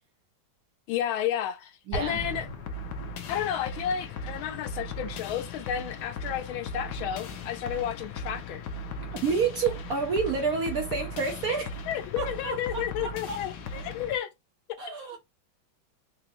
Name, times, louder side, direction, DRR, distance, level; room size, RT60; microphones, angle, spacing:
voice 1, 0.9-2.5 3.3-8.6 11.9-14.3, left 10 dB, 90° left, 1.5 m, -32 dB
Explosion, 1.9-3.7, equal, 45° right, 0.5 m, -39 dB
voice 2, 1.9-2.2 9.2-11.7 12.2-13.4 14.8-15.2, right 5 dB, 65° right, 0.9 m, -29 dB
sound 1, 2.2-14.2, left 2 dB, 65° left, 1.1 m, -38 dB
4.7 x 2.0 x 2.9 m
omnidirectional pair, 2.2 m